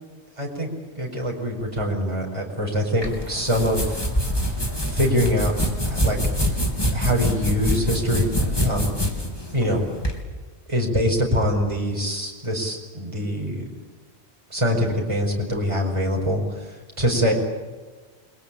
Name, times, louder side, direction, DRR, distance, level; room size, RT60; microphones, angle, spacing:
voice 1, 0.4-0.7 1.0-4.0 4.9-5.5 5.9-6.2 6.9-8.3 8.6-8.9 9.5-9.8 10.7-13.6 14.5-17.3, equal, 30° right, -1 dB, 5.2 m, -24 dB
sound 1, 3.0-10.2, equal, 20° left, 3.5 m, -25 dB
28.5 x 22.0 x 8.6 m, 1.4 s
omnidirectional pair, 1.1 m